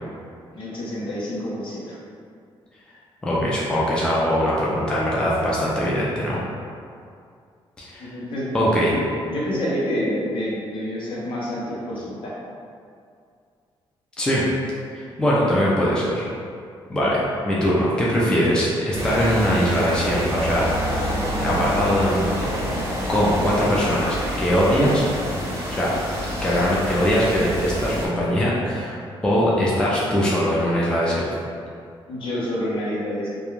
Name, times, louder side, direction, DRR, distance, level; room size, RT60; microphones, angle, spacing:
voice 1, 0.5-2.0 8.0-8.5 8.9-9.0 9.3-12.3 32.1-33.3, equal, 60° left, -6 dB, 0.7 m, -28 dB
voice 2, 3.2-6.4 7.8-8.1 8.5-8.9 14.2-14.4 14.9-16.2 16.9-20.7 21.0-22.5 23.1-25.1 25.7-25.9 26.4-28.9 29.2-31.3, equal, 10° left, -6 dB, 0.3 m, -21 dB
sound 1, 18.9-28.1, equal, 30° right, 0.6 m, -27 dB
2.4 x 2.2 x 3.0 m, 2.3 s
cardioid pair, 160°, 10 cm